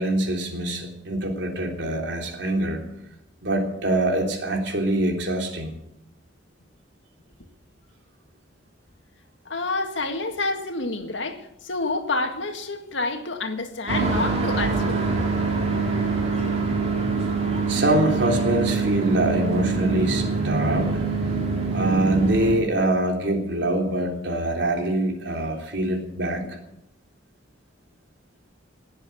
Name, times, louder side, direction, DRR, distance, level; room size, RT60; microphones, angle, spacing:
voice 1, 0.0-2.8 3.4-5.7 17.7-21.0 21.7-26.6, right 1 dB, 70° right, 3.5 m, -24 dB
voice 2, 9.5-15.0, left 3 dB, 80° left, 1.9 m, -28 dB
sound 1, 13.9-22.5, right 4 dB, 35° right, 3.7 m, -24 dB
19.0 x 8.0 x 8.4 m
head